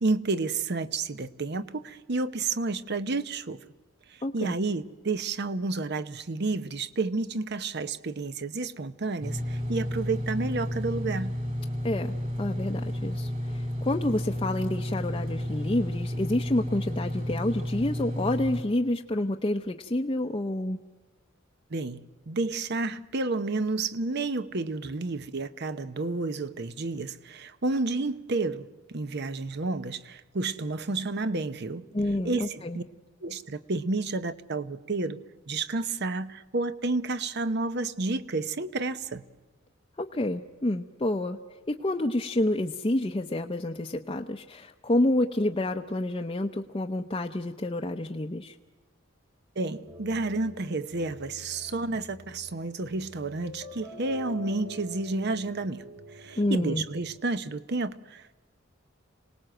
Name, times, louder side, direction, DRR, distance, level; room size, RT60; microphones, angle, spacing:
voice 1, 0.0-3.6 4.1-11.4 21.7-31.9 32.2-32.8 33.2-35.2 35.5-39.2 49.6-55.8 56.1-58.4, right 3 dB, 55° right, 13 dB, 0.8 m, -30 dB
voice 2, 4.2-4.6 11.8-20.8 31.9-32.8 40.0-41.4 41.7-48.6 56.4-56.8, left 1 dB, 25° left, 2 dB, 0.7 m, -28 dB
sound 1, 9.2-18.6, equal, 40° right, 4.2 m, -32 dB
sound 2, 49.9-57.2, right 1 dB, 75° right, 3.9 m, -46 dB
26.0 x 18.5 x 7.8 m, 1.2 s
head